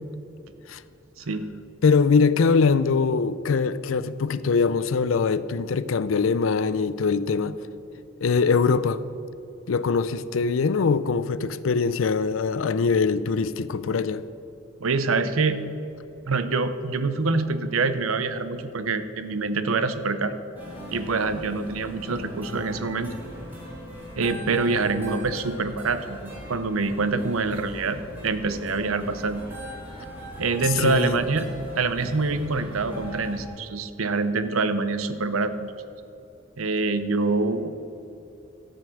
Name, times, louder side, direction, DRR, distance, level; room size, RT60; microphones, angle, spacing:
voice 1, 1.8-7.6 8.2-9.0 9.7-14.2 30.7-31.2, left 5 dB, 75° left, 0.5 m, -22 dB
voice 2, 14.8-15.6 16.2-20.4 20.9-23.1 24.2-29.4 30.4-31.5 31.8-35.7 36.6-37.7, right 3 dB, 90° right, 0.7 m, -25 dB
sound 1, 20.6-33.5, equal, 10° right, 2.7 m, -40 dB
13.5 x 5.2 x 7.6 m
head